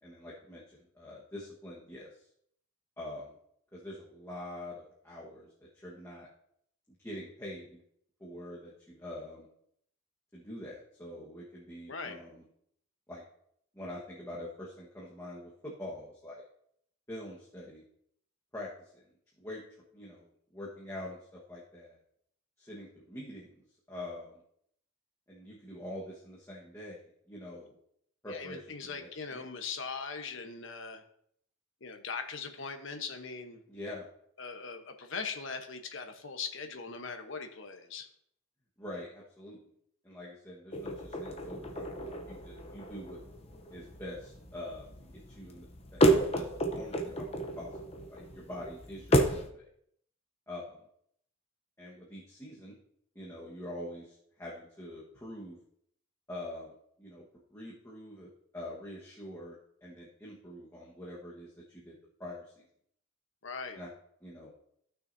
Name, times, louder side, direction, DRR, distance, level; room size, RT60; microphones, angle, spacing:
voice 1, 0.0-2.2 3.0-3.3 3.7-5.5 5.7-6.3 7.0-7.8 8.2-9.5 10.3-12.4 13.1-13.2 13.7-16.4 17.1-17.8 18.5-19.0 19.4-19.6 19.9-22.0 22.6-23.5 23.9-24.3 25.3-27.7 28.2-29.4 33.7-34.0 38.8-39.6 40.0-43.2 43.7-44.9 45.1-45.7 45.9-47.3 47.6-49.6 50.5-50.8 51.8-52.8 53.1-55.6 56.3-57.2 57.5-59.6 59.8-61.9 62.2-62.6 63.7-63.9 64.2-64.5, left 1 dB, 15° left, -6 dB, 1.4 m, -45 dB
voice 2, 28.3-31.0 31.8-33.6 34.4-38.1 63.4-63.8, left 5 dB, 60° left, 6 dB, 1.0 m, -40 dB
sound 1, 40.7-49.5, right 1 dB, 30° left, 0.7 m, -31 dB
14.5 x 6.3 x 2.7 m, 0.69 s
head